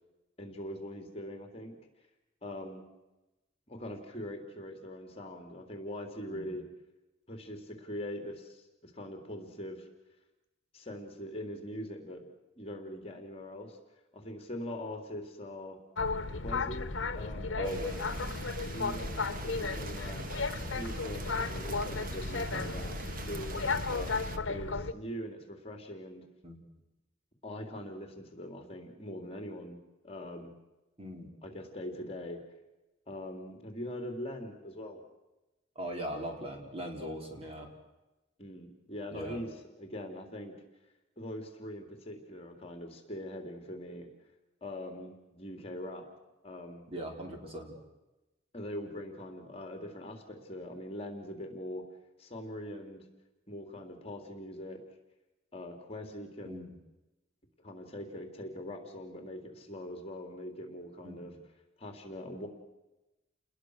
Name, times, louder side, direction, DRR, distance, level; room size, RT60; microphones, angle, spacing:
voice 1, 0.4-1.8 2.4-2.8 3.7-6.6 7.3-9.9 10.7-12.2 12.6-13.8 14.1-15.8 16.4-16.9 17.1-17.6 18.6-20.2 20.7-23.0 23.3-24.1 24.5-26.2 27.4-29.8 30.0-30.5 31.4-32.4 33.1-35.0 38.4-40.5 41.2-44.1 44.6-46.0 46.4-46.8 48.5-51.8 52.2-53.0 53.5-54.8 55.5-56.7 57.6-61.3 61.8-62.5, left 1 dB, 30° left, 4 dB, 3.3 m, -42 dB
Boat Water vehicle, 16.0-24.9, left 4 dB, 70° left, 1.1 m, -34 dB
voice 2, 17.6-18.0 26.4-26.6 31.0-31.3 35.7-37.7 39.1-39.4 46.9-47.7 56.4-56.8 61.0-61.2, equal, 30° right, 2 dB, 4.5 m, -39 dB
sound 1, 17.6-24.4, right 2 dB, 50° right, 1.7 m, -43 dB
29.5 x 21.0 x 6.5 m, 1.0 s
head